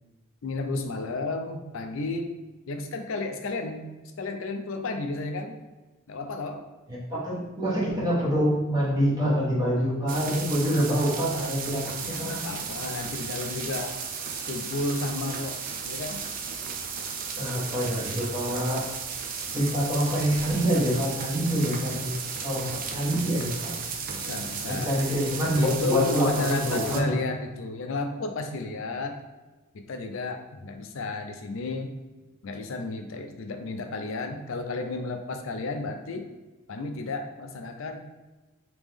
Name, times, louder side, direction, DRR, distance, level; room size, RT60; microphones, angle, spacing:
voice 1, 0.4-2.3 2.7-3.9 4.2-5.6 6.1-6.6 12.0-14.0 14.5-15.6 15.8-16.2 24.0-25.0 25.5-29.2 29.7-31.9 32.4-36.3 36.7-38.0, left 3 dB, 60° left, 5 dB, 0.4 m, -32 dB
voice 2, 6.9-12.4 17.4-18.8 19.5-22.1 22.4-23.7 24.7-27.1, equal, 20° right, -7 dB, 1.0 m, -26 dB
sound 1, 10.1-27.0, right 5 dB, 40° right, 0.3 m, -35 dB
3.5 x 2.9 x 3.4 m, 1.2 s
head